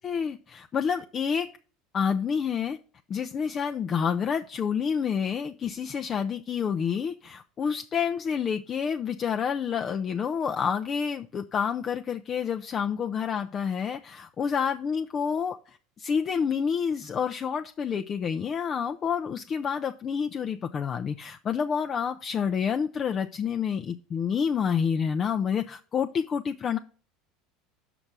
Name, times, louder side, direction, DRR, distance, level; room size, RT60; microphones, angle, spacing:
voice 1, 0.0-1.5 1.9-2.8 3.1-26.8, left 7 dB, 40° left, 6 dB, 0.5 m, -28 dB
6.0 x 5.3 x 6.0 m, 0.39 s
hypercardioid pair, 75°, 0 cm